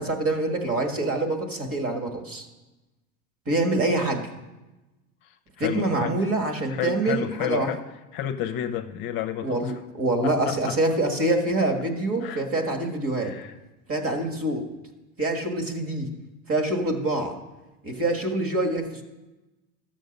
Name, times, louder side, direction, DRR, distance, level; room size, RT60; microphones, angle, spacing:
voice 1, 0.0-2.5 3.5-4.3 5.6-7.7 9.4-13.4 13.9-14.7 15.2-16.1 16.5-17.4 17.8-19.0, right 2 dB, 30° right, 5 dB, 1.7 m, -25 dB
voice 2, 5.2-6.1 6.7-7.8 8.1-9.8 10.2-10.8 12.2-12.5 13.2-13.5, left 10 dB, 50° left, 9 dB, 0.8 m, -31 dB
12.5 x 7.6 x 5.3 m, 1.1 s
supercardioid pair, 105°, 46 cm